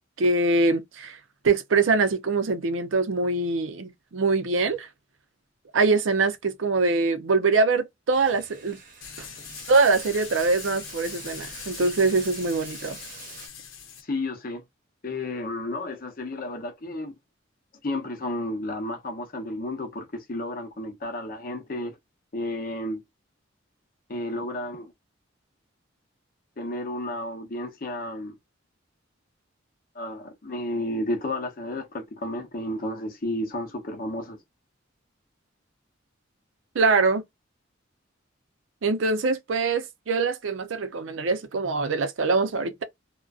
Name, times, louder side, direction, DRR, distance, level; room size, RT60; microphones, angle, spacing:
voice 1, 0.2-1.2 1.4-4.9 5.7-8.8 9.2-9.3 9.7-13.0 36.8-37.2 38.8-42.8, right 3 dB, 75° right, 0.5 m, -23 dB
Bathtub (filling or washing), 8.1-13.5, right 4 dB, 45° right, 0.8 m, -45 dB
sound 1, 9.0-14.0, left 7 dB, 85° left, 0.7 m, -41 dB
voice 2, 14.0-14.6 15.0-17.1 17.8-22.0 22.3-23.0 24.1-24.9 26.6-28.4 29.9-34.4, left 1 dB, 45° left, 0.7 m, -32 dB
2.5 x 2.1 x 2.3 m
head